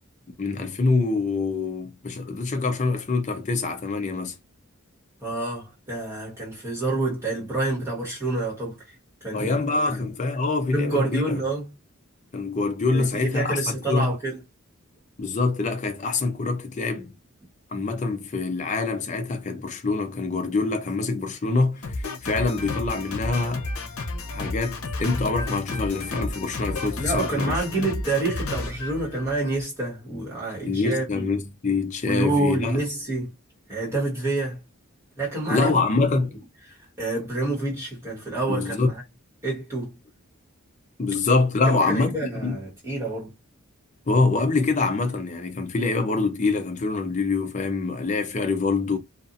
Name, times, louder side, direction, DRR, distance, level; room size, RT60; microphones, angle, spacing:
voice 1, 0.4-4.4 9.3-11.4 12.3-13.6 13.9-14.1 15.2-17.1 17.7-23.7 24.3-27.6 30.7-32.8 35.5-36.3 38.5-38.9 41.0-42.2 42.4-42.6 44.1-49.0, left 3 dB, 35° left, 0.5 m, -25 dB
voice 2, 5.2-9.6 9.9-10.1 10.7-11.7 12.9-14.4 27.0-31.2 32.0-33.3 33.7-34.6 35.2-35.8 36.1-36.2 36.7-39.0 39.4-40.0 41.6-43.3, right 2 dB, 10° right, 1.4 m, -28 dB
Drum kit, 21.8-29.6, left 2 dB, 80° left, 0.8 m, -32 dB
2.6 x 2.4 x 2.6 m
head